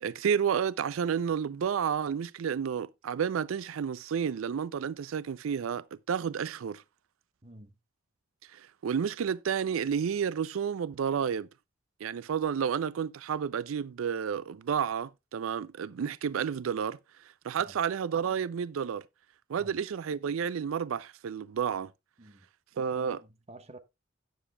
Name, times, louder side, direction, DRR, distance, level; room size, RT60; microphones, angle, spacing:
voice 1, 0.0-6.8 8.5-11.5 12.0-19.1 19.5-21.9 22.8-23.2, right 7 dB, 85° right, 0.4 m, -31 dB
voice 2, 7.4-7.8 17.6-17.8 19.6-19.8 22.2-22.5 22.9-23.8, right 1 dB, 35° right, 1.2 m, -50 dB
17.0 x 7.0 x 2.3 m
head